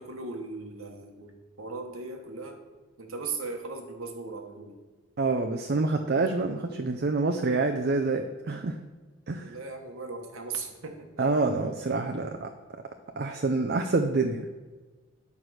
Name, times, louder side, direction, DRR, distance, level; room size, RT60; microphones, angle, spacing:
voice 1, 0.0-2.6 3.0-4.8 9.4-11.1, right 4 dB, 85° right, 4 dB, 1.2 m, -38 dB
voice 2, 5.2-8.8 9.3-9.5 11.2-12.5 13.2-14.5, right 3 dB, 50° right, 5 dB, 0.5 m, -27 dB
9.1 x 4.8 x 6.3 m, 1.3 s
head